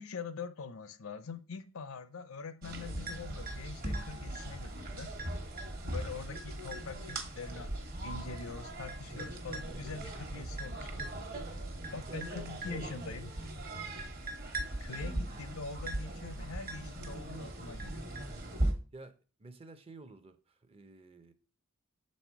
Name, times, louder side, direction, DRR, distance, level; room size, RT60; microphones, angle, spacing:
voice 1, 0.0-5.2 5.8-11.0 11.9-13.4 14.8-18.1, left 5 dB, 80° left, 0.6 m, -44 dB
sound 1, 2.6-18.7, right 1 dB, 45° right, 1.2 m, -39 dB
voice 2, 18.9-21.3, right 2 dB, 25° right, 0.5 m, -53 dB
6.6 x 4.2 x 4.5 m
head